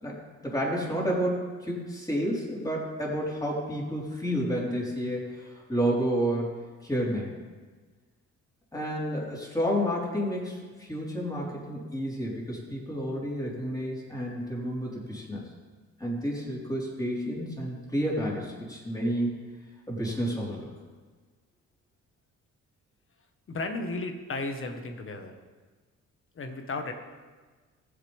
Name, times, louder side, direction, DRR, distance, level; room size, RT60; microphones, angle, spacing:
voice 1, 0.0-6.5 6.8-7.4 8.7-15.4 16.0-19.3 19.9-20.7, equal, 10° left, -4 dB, 4.3 m, -30 dB
voice 2, 23.5-25.3 26.3-26.9, left 2 dB, 45° left, 5 dB, 1.6 m, -34 dB
20.5 x 8.0 x 3.6 m, 1.4 s
cardioid pair, 90°, 30 cm